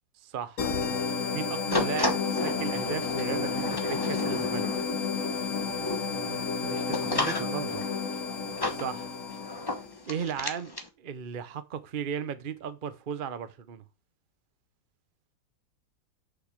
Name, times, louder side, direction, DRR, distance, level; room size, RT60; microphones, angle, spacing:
voice 1, 0.2-0.7 1.3-4.7 8.7-9.1 10.1-13.8, right 7 dB, 45° right, 0.7 m, -36 dB
sound 1, 0.6-9.9, left 5 dB, 45° left, 1.6 m, -31 dB
sound 2, 1.7-10.9, left 2 dB, 15° left, 0.9 m, -34 dB
voice 2, 6.0-7.8, right 8 dB, 80° right, 1.8 m, -39 dB
6.7 x 5.9 x 6.3 m
omnidirectional pair, 2.0 m